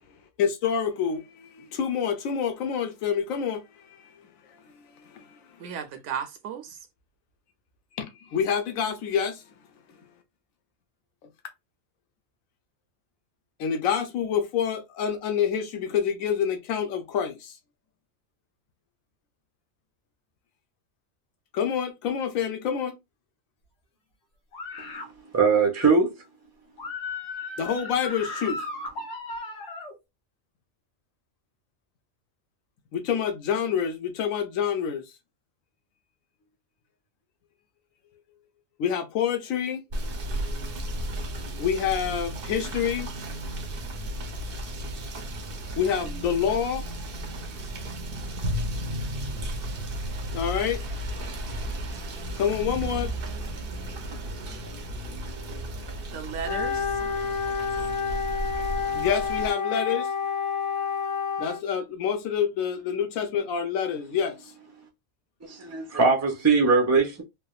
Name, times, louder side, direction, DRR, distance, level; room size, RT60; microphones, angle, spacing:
voice 1, 0.4-3.6 5.1-5.3 8.0-9.4 13.6-17.5 21.5-23.0 27.6-28.6 32.9-35.0 38.8-39.8 41.6-43.1 45.8-46.8 50.3-50.8 52.4-53.1 58.9-60.1 61.4-64.5, left 7 dB, 85° left, 1.0 m, -27 dB
voice 2, 5.6-6.8 56.1-57.0, right 7 dB, 70° right, 0.9 m, -35 dB
sound 1, 24.5-25.1 26.8-29.9, left 3 dB, 60° left, 1.1 m, -35 dB
voice 3, 25.3-26.1 65.4-67.2, right 4 dB, 20° right, 0.5 m, -21 dB
Rain / Motor vehicle (road), 39.9-59.5, right 1 dB, 55° right, 0.7 m, -34 dB
Wind instrument woodwind instrument, 56.4-61.6, left 6 dB, 40° left, 0.5 m, -29 dB
3.3 x 2.1 x 2.3 m
omnidirectional pair, 1.4 m